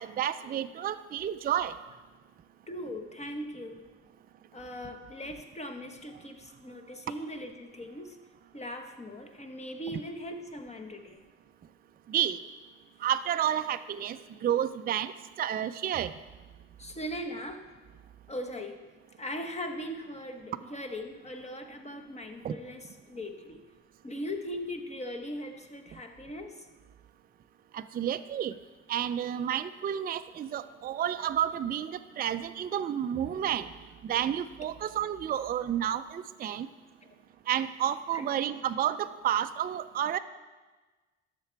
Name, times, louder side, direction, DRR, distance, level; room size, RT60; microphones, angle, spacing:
voice 1, 0.0-1.7 9.9-10.0 12.1-12.4 13.0-15.1 15.4-16.1 22.4-22.5 27.7-28.5 28.9-33.7 34.0-36.7 37.5-40.2, right 10 dB, 30° right, 10 dB, 0.4 m, -30 dB
voice 2, 2.7-3.8 4.5-8.2 8.5-11.2 16.8-17.6 18.3-18.8 19.2-23.6 24.0-26.5 38.1-38.3, equal, 20° left, 5 dB, 1.1 m, -39 dB
11.5 x 6.8 x 4.5 m, 1.3 s
cardioid pair, 90°, 30 cm